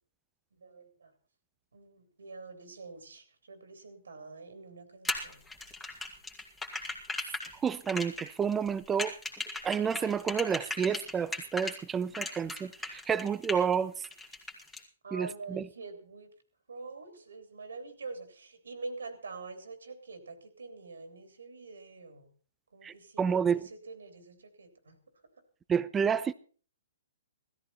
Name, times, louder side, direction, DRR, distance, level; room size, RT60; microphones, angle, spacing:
voice 1, 0.6-1.1 1.7-5.5 15.0-16.3 16.7-22.3 22.7-25.0, right 3 dB, 85° right, 3.3 m, -45 dB
sound 1, 5.0-11.8 12.1-13.7 14.0-14.8, left 2 dB, 5° left, 2.5 m, -37 dB
voice 2, 7.6-9.1 9.6-13.9 15.1-15.7 22.8-23.7 25.7-26.3, right 7 dB, 15° right, 0.7 m, -30 dB
16.5 x 14.0 x 4.3 m
hypercardioid pair, 135°, 0 cm